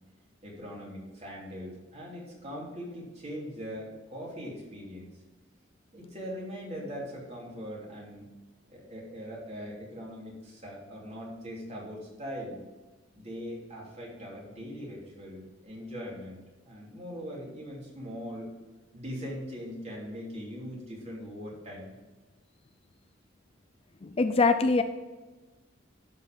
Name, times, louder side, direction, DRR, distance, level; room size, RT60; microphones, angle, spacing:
voice 1, 0.4-5.1 5.9-8.3 8.7-12.6 13.1-18.5 18.9-21.9, equal, 35° right, -3 dB, 3.1 m, -41 dB
voice 2, 24.0-24.8, left 3 dB, 30° left, 9 dB, 0.4 m, -23 dB
12.0 x 5.5 x 5.3 m, 1.2 s
head